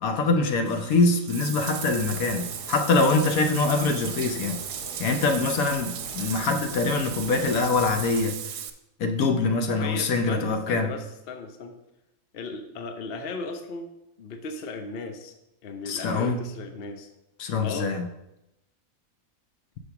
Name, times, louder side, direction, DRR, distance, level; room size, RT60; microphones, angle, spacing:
voice 1, 0.0-4.6 5.0-8.3 9.0-10.9 15.9-16.4 17.4-18.1, left 3 dB, 65° left, 6 dB, 1.1 m, -24 dB
Bathtub (filling or washing), 0.7-8.7, right 9 dB, 80° right, 1.2 m, -36 dB
sound 1, 1.6-8.2, left 2 dB, 85° left, 2.0 m, -44 dB
voice 2, 9.7-11.7 12.3-13.9 14.2-15.3 15.6-17.1 17.6-17.9, left 3 dB, 50° left, 6 dB, 0.8 m, -36 dB
6.4 x 4.9 x 5.7 m, 0.89 s
omnidirectional pair, 1.7 m